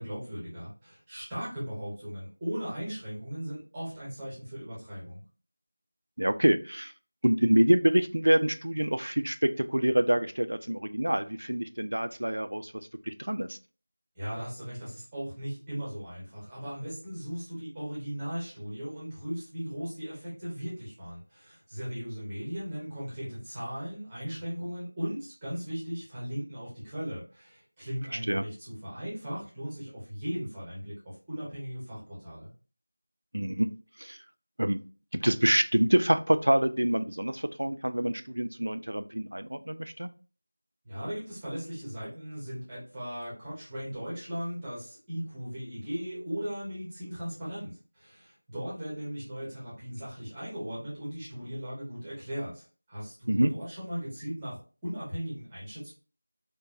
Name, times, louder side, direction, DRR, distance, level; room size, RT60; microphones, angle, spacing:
voice 1, 0.0-5.2 14.1-32.5 40.8-55.9, equal, 5° right, -8 dB, 0.6 m, -37 dB
voice 2, 6.2-6.9 7.2-13.6 28.3-28.4 33.3-33.7 34.0-34.2 34.6-34.8 35.1-40.1 53.3-53.5, right 1 dB, 80° right, 10 dB, 0.3 m, -26 dB
3.7 x 2.2 x 2.3 m, 0.35 s
figure-of-eight pair, 180°, 0 cm